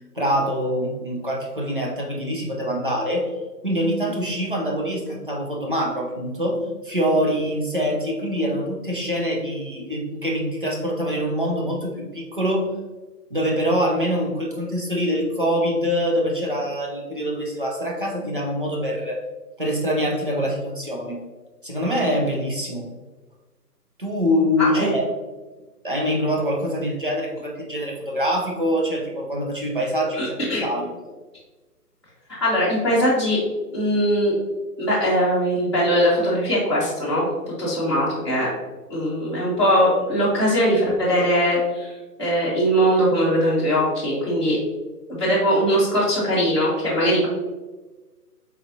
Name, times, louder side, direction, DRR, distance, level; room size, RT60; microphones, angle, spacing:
voice 1, 0.2-3.3 3.6-12.7 13.3-19.2 19.6-21.2 21.6-22.9 24.0-25.0 25.8-30.9, equal, 35° right, -2 dB, 0.6 m, -24 dB
voice 2, 24.6-25.0 30.1-30.7 32.4-33.4 33.7-34.3 34.8-37.3 37.6-38.5 38.9-41.9 42.2-44.6 45.1-47.3, equal, 20° left, -10 dB, 1.0 m, -20 dB
4.3 x 4.1 x 2.7 m, 1.2 s
hypercardioid pair, 175°, 48 cm